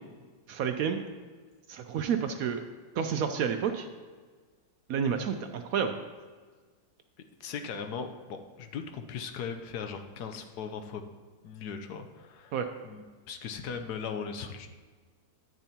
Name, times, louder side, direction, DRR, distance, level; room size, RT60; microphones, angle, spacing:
voice 1, 0.5-1.0 1.7-2.6 2.9-3.9 4.9-6.0 12.5-12.7, right 7 dB, 70° right, 7 dB, 0.9 m, -30 dB
voice 2, 7.4-11.0 11.4-12.5 12.8-14.7, left 6 dB, 75° left, 7 dB, 1.2 m, -38 dB
10.5 x 9.0 x 2.8 m, 1.5 s
omnidirectional pair, 1.8 m